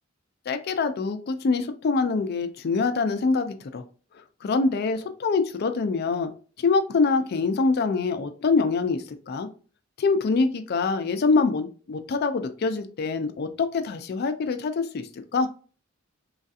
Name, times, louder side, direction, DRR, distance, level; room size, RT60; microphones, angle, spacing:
voice 1, 0.5-3.8 4.4-6.3 6.6-9.5 10.0-15.5, left 4 dB, 50° left, 8 dB, 0.4 m, -25 dB
3.1 x 2.4 x 2.6 m, 0.38 s
head